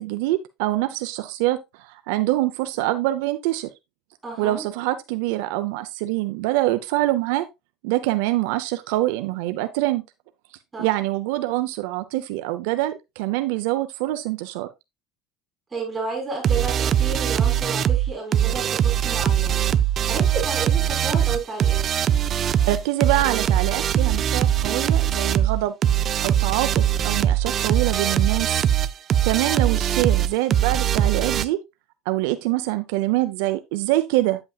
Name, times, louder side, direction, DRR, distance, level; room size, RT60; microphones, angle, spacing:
voice 1, 0.0-3.7 4.4-7.5 7.8-10.0 10.8-14.7 22.7-25.7 26.2-28.7 29.3-31.6 32.1-34.4, right 16 dB, 80° right, 0.6 m, -25 dB
voice 2, 4.2-4.6 10.7-10.9 15.7-21.8, right 4 dB, 15° right, 6.0 m, -32 dB
sound 1, 16.4-31.5, right 10 dB, 30° right, 0.4 m, -21 dB
9.0 x 8.0 x 2.3 m
cardioid pair, 160°, 0 cm